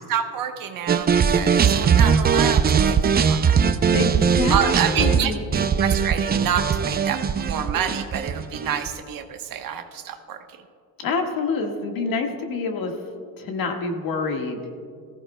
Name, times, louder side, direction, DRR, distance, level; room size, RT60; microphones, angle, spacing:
voice 1, 0.1-3.6 4.5-10.4, right 8 dB, 55° right, 6 dB, 1.1 m, -28 dB
sound 1, 0.9-9.0, right 6 dB, 25° right, 0.5 m, -20 dB
voice 2, 3.9-5.7 11.0-12.9 13.4-14.6, left 4 dB, 55° left, 3 dB, 1.7 m, -27 dB
18.5 x 15.0 x 2.2 m, 2.2 s
supercardioid pair, 100°, 40 cm